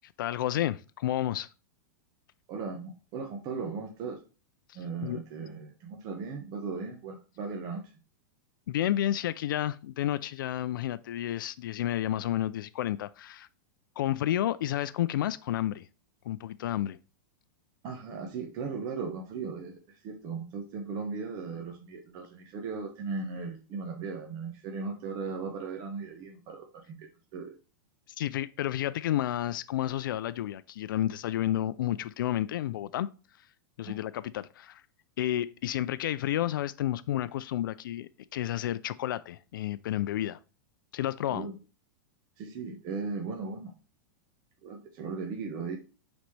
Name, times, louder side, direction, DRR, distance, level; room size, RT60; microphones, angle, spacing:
voice 1, 0.2-1.5 4.7-5.2 8.7-13.5 14.0-15.9 16.3-17.0 28.2-33.1 33.8-34.8 35.2-40.4 40.9-41.5, left 12 dB, 75° left, 0.4 m, -31 dB
voice 2, 2.5-4.2 4.7-8.0 17.8-27.6 33.9-34.0 41.3-41.6 42.4-43.7 44.6-45.8, right 4 dB, 35° right, 1.1 m, -37 dB
9.2 x 4.1 x 3.3 m
supercardioid pair, 150°, 11 cm